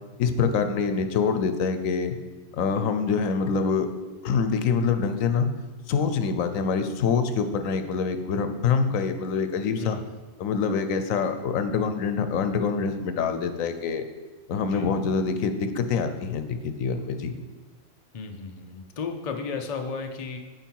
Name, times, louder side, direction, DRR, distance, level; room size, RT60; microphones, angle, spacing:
voice 1, 0.2-2.2 2.5-3.9 4.2-5.5 5.9-10.0 10.4-14.0 14.5-17.4, left 5 dB, 90° left, 8 dB, 1.1 m, -25 dB
voice 2, 18.1-20.4, left 5 dB, 40° left, 4 dB, 0.6 m, -33 dB
9.1 x 5.5 x 4.6 m, 1.3 s
omnidirectional pair, 1.3 m